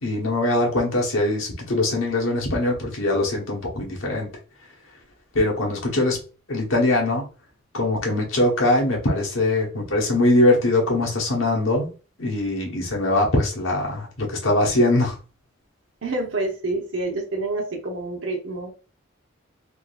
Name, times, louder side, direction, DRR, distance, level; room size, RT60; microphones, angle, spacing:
voice 1, 0.0-4.3 5.3-6.2 6.5-7.3 7.7-11.9 12.2-15.2, left 2 dB, 75° left, -2 dB, 1.1 m, -22 dB
voice 2, 16.0-18.7, right 2 dB, 65° right, 1 dB, 0.9 m, -28 dB
3.6 x 2.6 x 2.4 m, 0.36 s
head